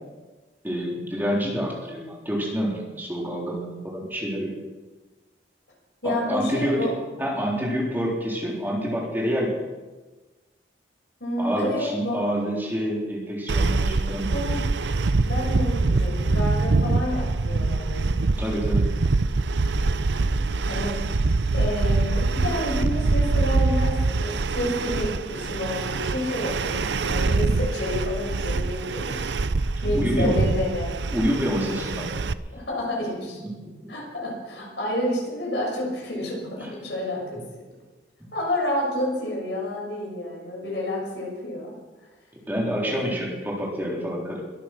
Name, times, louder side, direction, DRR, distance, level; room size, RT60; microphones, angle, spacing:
voice 1, 0.6-4.5 6.0-6.8 7.2-9.6 11.4-14.5 18.4-18.8 29.9-30.4 31.1-32.1 33.7-33.9 42.5-44.4, equal, 10° right, -4 dB, 3.8 m, -27 dB
voice 2, 6.0-6.9 8.0-8.1 11.2-12.2 14.3-14.6 15.2-18.2 20.2-20.4 20.7-21.0 21.5-29.3 29.8-30.9 32.5-33.4 33.9-37.5 38.3-41.8 42.8-43.1, left 1 dB, 70° left, -2 dB, 6.6 m, -29 dB
sound 1, 13.5-32.3, right 3 dB, 75° right, 0.6 m, -24 dB
22.5 x 10.0 x 6.1 m, 1.2 s
head